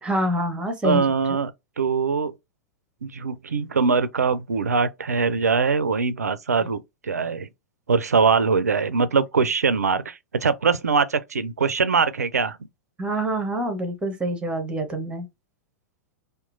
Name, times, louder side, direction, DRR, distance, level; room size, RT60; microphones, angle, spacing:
voice 1, 0.0-1.0 6.6-6.7 13.0-15.3, right 1 dB, 10° right, 0.7 m, -26 dB
voice 2, 0.8-1.5 1.8-2.3 3.0-7.5 7.9-12.6, right 5 dB, 80° right, 0.3 m, -22 dB
2.9 x 2.1 x 2.5 m
figure-of-eight pair, 95°, 8 cm